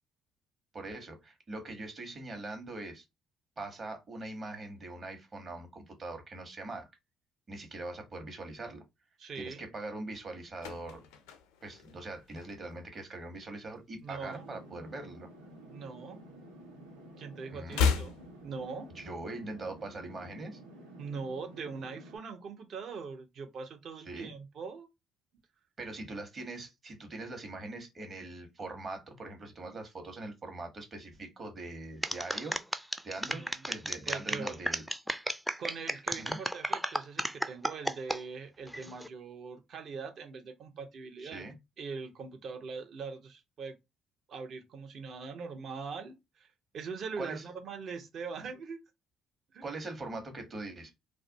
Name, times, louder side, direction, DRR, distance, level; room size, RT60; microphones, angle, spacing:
voice 1, 0.7-3.0 3.6-6.9 7.5-8.8 9.3-11.1 11.6-15.3 17.5-17.9 18.9-20.6 24.0-24.3 25.8-34.8 36.2-36.4 41.2-41.5 47.2-47.5 49.6-50.9, right 2 dB, 40° right, 1.1 m, -42 dB
voice 2, 9.2-9.6 14.0-14.5 15.7-16.2 17.2-18.2 18.4-18.9 21.0-24.9 33.3-33.5 34.1-34.6 35.6-41.4 41.8-43.8 44.3-46.5 46.7-48.8 49.5-49.6, right 5 dB, 55° right, 0.8 m, -41 dB
sound 1, 10.2-12.9 13.2-13.5 13.8-15.2 15.5-16.9 17.1-19.2 19.5-19.6, left 6 dB, 75° left, 0.4 m, -35 dB
sound 2, 14.2-22.2, right 1 dB, 90° right, 0.7 m, -51 dB
sound 3, 32.0-38.2 38.7-39.1, equal, 5° right, 0.4 m, -33 dB
2.4 x 2.1 x 2.7 m
hypercardioid pair, 50°, 0 cm